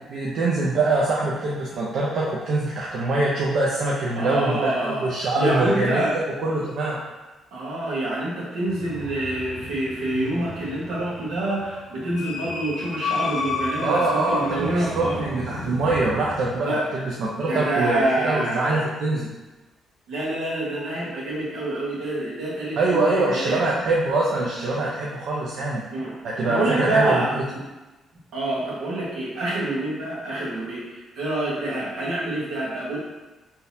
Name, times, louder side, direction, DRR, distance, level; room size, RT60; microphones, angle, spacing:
voice 1, 0.1-6.0 6.4-7.0 13.8-19.3 22.8-25.8 26.2-27.4, right 2 dB, 70° right, -5 dB, 0.5 m, -24 dB
voice 2, 4.1-6.2 7.5-15.2 16.6-16.8 17.5-18.8 20.1-23.6 25.9-26.1 26.4-27.6 28.3-33.0, right 2 dB, 85° right, -6 dB, 1.3 m, -27 dB
sound 1, 8.7-16.6, left 3 dB, 80° left, 0.8 m, -33 dB
3.8 x 2.7 x 2.7 m, 1.1 s
cardioid pair, 90°, 0 cm